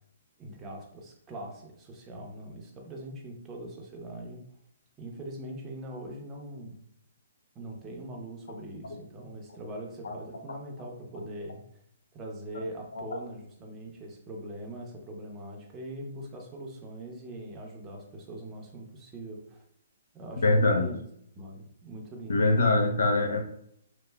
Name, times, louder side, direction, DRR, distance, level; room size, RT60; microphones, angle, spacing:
voice 1, 0.4-4.5 5.0-6.8 7.5-11.6 12.1-19.6 20.1-21.0 21.4-22.5, right 1 dB, 20° right, 0 dB, 0.7 m, -42 dB
voice 2, 20.4-20.9 22.3-23.4, left 2 dB, 75° left, 3 dB, 0.6 m, -24 dB
3.2 x 2.5 x 2.2 m, 0.72 s
hypercardioid pair, 140°, 0 cm